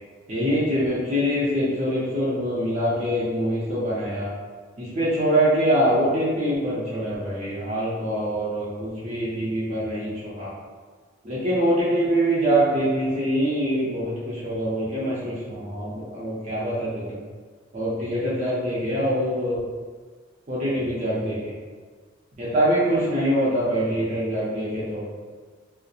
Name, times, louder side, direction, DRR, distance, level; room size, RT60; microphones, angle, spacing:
voice 1, 0.3-4.3 4.8-10.5 11.2-17.2 17.7-19.6 20.5-21.5 22.4-25.0, equal, 35° right, -9 dB, 0.5 m, -24 dB
2.7 x 2.0 x 2.3 m, 1.5 s
head